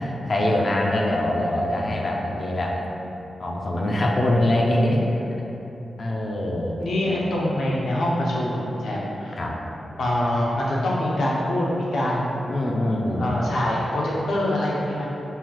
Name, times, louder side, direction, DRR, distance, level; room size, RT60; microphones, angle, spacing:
voice 1, 0.0-2.8 3.4-5.1 6.0-6.8 9.4-9.5 12.5-13.3, left 1 dB, 45° left, -1 dB, 0.4 m, -23 dB
voice 2, 6.8-9.4 10.0-12.4 13.2-15.1, left 1 dB, 85° left, -5 dB, 0.7 m, -24 dB
5.6 x 2.3 x 3.0 m, 3.0 s
wide cardioid pair, 105°, 0 cm